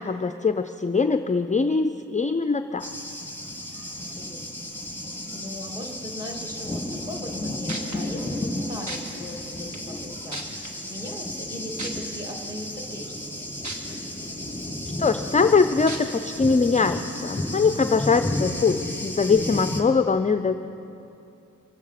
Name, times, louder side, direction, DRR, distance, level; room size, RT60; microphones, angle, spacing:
voice 1, 0.0-2.9 15.0-20.5, left 4 dB, 25° left, 9 dB, 0.4 m, -22 dB
Thunder, 2.8-19.8, left 1 dB, 5° left, 2.2 m, -33 dB
voice 2, 3.9-4.7 5.3-13.5, left 1 dB, 10° right, 1 dB, 2.3 m, -39 dB
sound 1, 7.3-7.4 7.7-8.0 8.9-9.0 9.7-9.8 10.3-10.7 11.8-11.9 13.6-13.7 14.3-14.4 15.9-16.0 16.7-16.8, right 2 dB, 65° right, 1.6 m, -33 dB
23.5 x 8.2 x 5.8 m, 2.8 s
wide cardioid pair, 55°, 31 cm